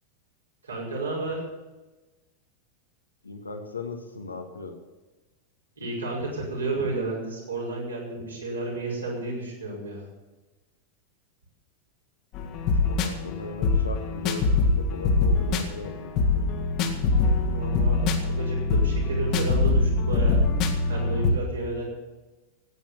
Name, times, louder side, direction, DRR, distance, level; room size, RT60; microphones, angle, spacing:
voice 1, 0.6-1.4 5.8-10.1 17.5-20.4 20.9-21.8, right 2 dB, 75° right, -2 dB, 5.3 m, -32 dB
voice 2, 3.2-4.8 12.9-14.5 14.8-16.4, left 3 dB, 75° left, 5 dB, 1.9 m, -38 dB
sound 1, 12.3-21.3, left 3 dB, 40° left, 1.9 m, -23 dB
16.5 x 9.4 x 7.0 m, 1.2 s
figure-of-eight pair, 90°, 0 cm